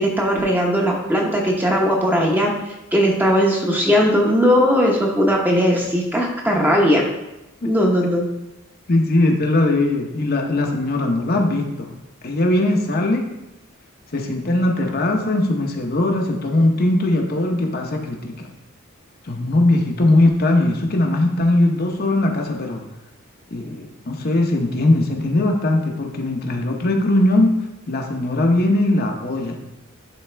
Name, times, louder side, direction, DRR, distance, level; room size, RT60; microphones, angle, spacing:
voice 1, 0.0-2.5 2.9-7.0 7.6-8.3, equal, 10° right, -1 dB, 0.9 m, -18 dB
voice 2, 8.9-11.9 12.2-13.2 14.1-18.5 19.2-22.9 23.5-27.5 27.9-29.6, left 1 dB, 50° left, 1 dB, 0.8 m, -20 dB
10.5 x 3.6 x 3.4 m, 0.94 s
head